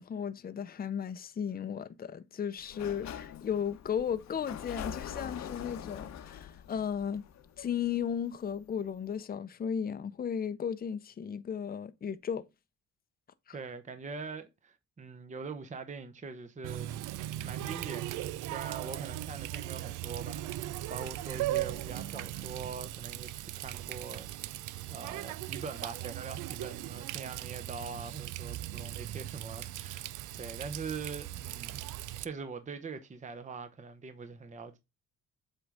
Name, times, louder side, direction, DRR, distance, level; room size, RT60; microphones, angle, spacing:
voice 1, 0.0-7.2 7.6-12.5 13.5-13.6, left 8 dB, 30° left, 0.6 m, -35 dB
Sliding door, 2.6-8.3, left 9 dB, 65° left, 0.9 m, -44 dB
voice 2, 13.5-17.0 17.4-24.6 24.9-30.1 30.4-31.8 32.2-34.8, right 5 dB, 25° right, 0.8 m, -43 dB
Water tap faucet, 16.6-32.2, right 14 dB, 85° right, 0.5 m, -38 dB
7.9 x 3.8 x 3.5 m
cardioid pair, 90°, 30 cm